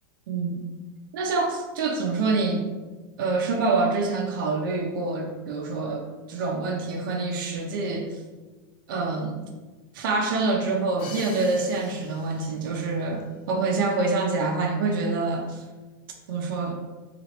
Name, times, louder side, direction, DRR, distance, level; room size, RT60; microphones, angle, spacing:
voice 1, 1.1-2.6 3.2-8.2 8.9-9.4 9.9-15.6 16.3-16.8, right 3 dB, 70° right, 2 dB, 0.6 m, -26 dB
Crash cymbal, 11.0-12.8, left 3 dB, 45° left, 0.7 m, -44 dB
2.9 x 2.4 x 3.0 m, 1.3 s
supercardioid pair, 135°, 11 cm